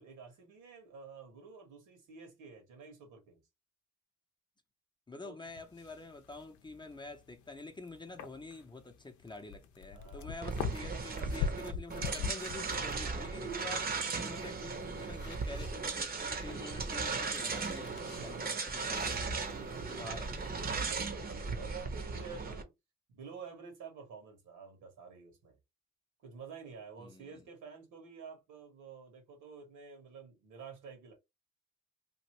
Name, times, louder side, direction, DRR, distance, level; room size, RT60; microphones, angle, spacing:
voice 1, 0.0-3.4 5.2-5.4 9.9-10.5 10.9-11.3 14.4-14.7 18.1-20.1 20.8-22.7 23.1-25.6 26.2-31.1, right 6 dB, 85° right, 1.5 m, -50 dB
voice 2, 5.1-13.9 14.2-19.4 19.9-20.6 27.0-27.4, left 3 dB, 15° left, 0.6 m, -47 dB
sound 1, 5.5-20.8, left 6 dB, 75° left, 0.6 m, -45 dB
sound 2, 10.4-22.6, right 4 dB, 30° right, 0.7 m, -37 dB
3.0 x 2.5 x 3.0 m
cardioid pair, 90°, 30 cm